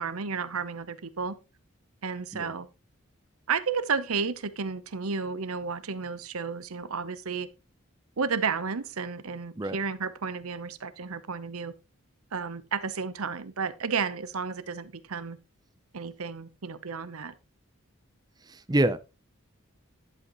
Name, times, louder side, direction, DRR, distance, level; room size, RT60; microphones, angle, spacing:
voice 1, 0.0-1.4 2.0-2.7 3.5-7.5 8.2-11.7 12.3-15.4 15.9-17.3, right 5 dB, 85° right, 0.8 m, -32 dB
voice 2, 18.7-19.0, right 1 dB, 20° right, 0.6 m, -25 dB
11.0 x 8.2 x 3.0 m
head